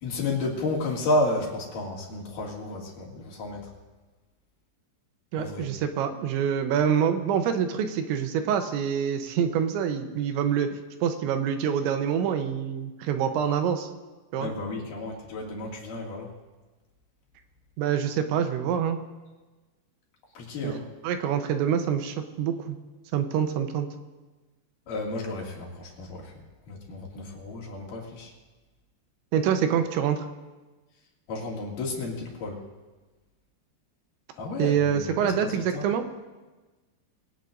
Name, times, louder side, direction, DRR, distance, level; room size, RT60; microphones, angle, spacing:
voice 1, 0.0-3.7 5.4-5.7 14.4-16.3 20.4-20.8 24.9-26.3 26.7-28.3 31.3-32.6 34.4-35.9, left 2 dB, 50° left, -2 dB, 3.5 m, -32 dB
voice 2, 5.3-13.9 14.3-14.5 17.8-19.0 20.6-20.8 21.0-22.8 23.1-23.9 29.3-30.3 34.6-36.0, right 8 dB, 80° right, 7 dB, 3.2 m, -26 dB
22.5 x 18.0 x 2.6 m, 1.2 s
omnidirectional pair, 5.3 m